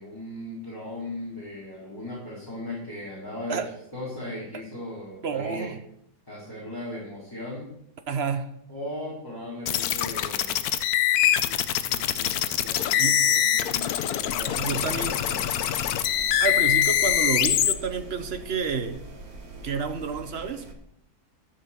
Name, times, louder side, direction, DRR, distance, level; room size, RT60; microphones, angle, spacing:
voice 1, 0.0-3.6 3.9-5.7 6.3-7.7 8.7-10.6 11.4-15.4, left 1 dB, 15° left, -8 dB, 4.0 m, -38 dB
voice 2, 5.2-5.8 8.1-8.6 13.0-13.2 14.6-15.2 16.4-19.0 19.6-20.7, right 5 dB, 45° right, 9 dB, 1.1 m, -29 dB
sound 1, 9.7-17.7, left 11 dB, 75° left, 1.1 m, -24 dB
sound 2, 14.2-20.7, right 1 dB, 70° right, 1.9 m, -42 dB
13.0 x 5.5 x 6.9 m, 0.75 s
omnidirectional pair, 1.7 m